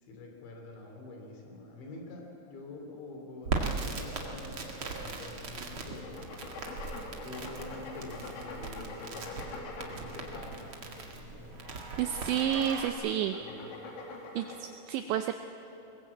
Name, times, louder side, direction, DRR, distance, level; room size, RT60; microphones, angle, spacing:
voice 1, 0.0-6.3 7.2-9.5 9.8-11.8 13.4-13.7, left 2 dB, 65° left, 2 dB, 5.3 m, -47 dB
Crackle, 3.4-12.9, right 4 dB, 65° right, 1.3 m, -39 dB
sound 1, 3.8-9.1, right 2 dB, 40° right, 4.6 m, -51 dB
sound 2, 6.0-10.9 11.5-14.6, left 3 dB, 80° left, 5.2 m, -44 dB
voice 2, 12.0-13.4 14.4-15.3, right 10 dB, 85° right, 8 dB, 2.6 m, -30 dB
22.0 x 20.0 x 8.5 m, 2.9 s
omnidirectional pair, 5.8 m